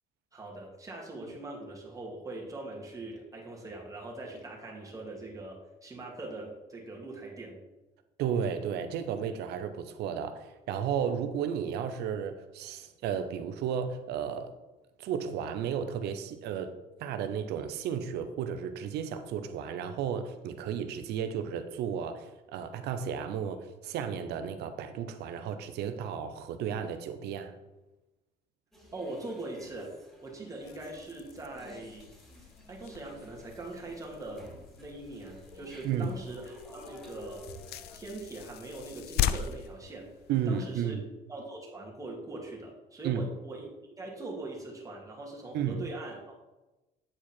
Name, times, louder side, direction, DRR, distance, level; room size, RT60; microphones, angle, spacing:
voice 1, 0.3-7.6 28.9-32.1 32.4-34.5 34.8-37.5 37.9-40.1 40.5-41.0 41.3-43.7 44.0-46.2, right 2 dB, 20° right, -2 dB, 2.2 m, -42 dB
voice 2, 8.2-14.5 15.0-27.5 35.8-36.2 40.3-41.0 43.0-43.2 45.5-45.9, right 7 dB, 80° right, 9 dB, 0.8 m, -33 dB
sound 1, 28.7-38.0, equal, ahead, 2.6 m, -52 dB
sound 2, 30.6-40.7, left 10 dB, 70° left, 0.4 m, -39 dB
8.8 x 4.8 x 4.5 m, 1.1 s
cardioid pair, 110°, 17 cm